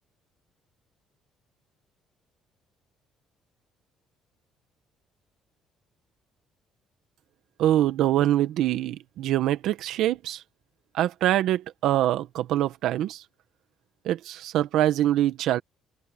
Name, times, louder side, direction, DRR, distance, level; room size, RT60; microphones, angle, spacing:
voice 1, 7.6-10.4 10.9-13.2 14.0-15.6, right 13 dB, 75° right, 1.5 m, -24 dB
open air
cardioid pair, 125°, 0 cm